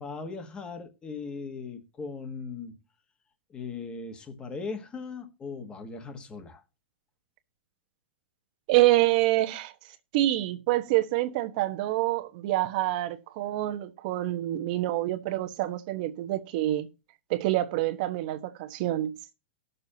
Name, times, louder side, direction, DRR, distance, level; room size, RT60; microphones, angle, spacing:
voice 1, 0.0-2.7 3.5-6.6, left 4 dB, 15° left, 1.2 m, -38 dB
voice 2, 8.7-9.7 10.1-16.9 17.3-19.2, right 16 dB, 45° right, 1.1 m, -26 dB
18.5 x 6.7 x 2.8 m
supercardioid pair, 160°, 7 cm